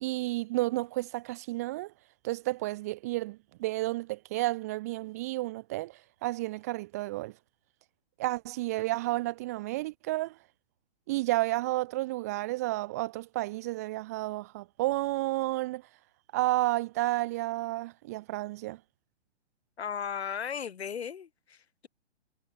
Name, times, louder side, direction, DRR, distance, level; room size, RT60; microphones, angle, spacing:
voice 1, 0.0-1.9 2.2-7.3 8.2-10.3 11.1-15.8 16.3-18.8, right 19 dB, 15° right, 0.6 m, -31 dB
voice 2, 19.8-21.6, left 7 dB, 70° left, 5.1 m, -35 dB
hypercardioid pair, 160°, 33 cm